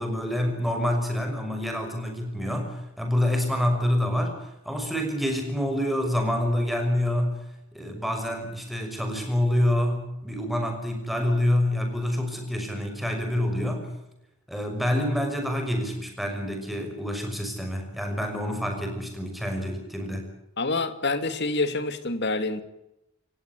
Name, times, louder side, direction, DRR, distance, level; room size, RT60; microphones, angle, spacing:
voice 1, 0.0-7.4 7.7-13.9 14.5-20.3, left 1 dB, ahead, 3 dB, 6.1 m, -27 dB
voice 2, 20.6-22.6, left 3 dB, 55° left, 10 dB, 2.4 m, -27 dB
28.5 x 17.0 x 8.5 m, 0.89 s
head